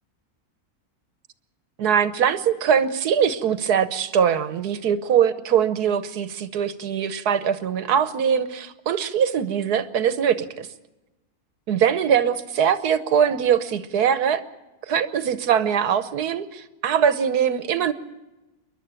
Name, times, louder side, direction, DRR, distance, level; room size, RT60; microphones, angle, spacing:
voice 1, 1.8-10.7 11.7-14.4 14.9-17.9, right 8 dB, 90° right, 12 dB, 1.5 m, -22 dB
28.0 x 11.5 x 8.9 m, 1.1 s
omnidirectional pair, 1.6 m